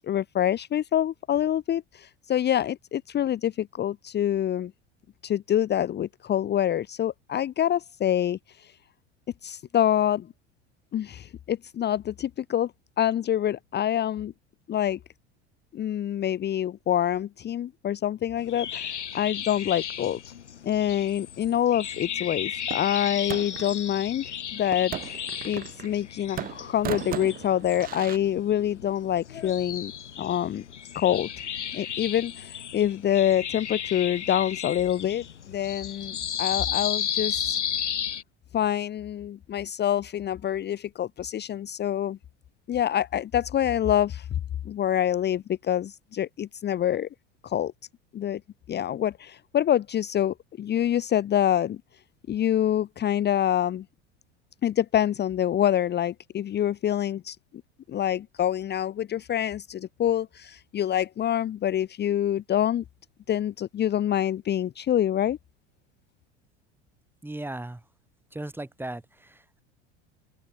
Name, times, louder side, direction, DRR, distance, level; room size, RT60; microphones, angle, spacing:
voice 1, 0.0-4.7 5.2-8.7 9.4-10.3 10.9-12.7 13.0-14.3 14.7-15.0 15.7-20.2 20.6-29.9 30.2-30.6 30.9-31.3 31.7-37.6 38.5-42.2 42.7-44.3 44.6-47.1 47.4-47.7 48.1-48.4 48.7-51.8 52.3-53.8 54.6-57.4 57.9-62.8 63.3-65.4, left 11 dB, 30° left, 1.0 m, -26 dB
sound 1, 18.4-38.2, left 9 dB, 80° left, 1.3 m, -34 dB
sound 2, 22.7-23.8 24.7-26.1 26.4-28.2, right 11 dB, 25° right, 0.6 m, -36 dB
voice 2, 67.2-67.8 68.3-69.6, right 1 dB, 5° right, 2.5 m, -37 dB
open air
figure-of-eight pair, 75°, 35 cm